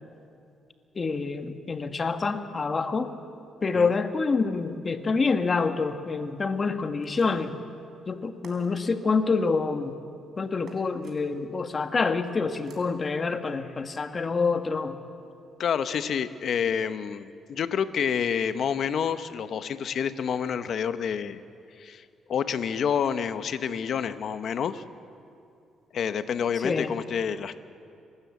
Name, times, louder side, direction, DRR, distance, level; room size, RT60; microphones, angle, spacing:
voice 1, 0.9-3.1 3.6-7.5 8.1-9.9 10.4-14.9 26.6-26.9, left 4 dB, 35° left, 8 dB, 1.3 m, -27 dB
sound 1, 7.0-7.6 8.4-8.9 10.7-11.2 12.5-12.9, right 3 dB, 55° right, 4.3 m, -53 dB
voice 2, 15.6-21.4 21.8-24.8 25.9-27.6, left 7 dB, 60° left, 11 dB, 0.9 m, -28 dB
26.5 x 12.5 x 8.2 m, 2.5 s
cardioid pair, 90°, 0 cm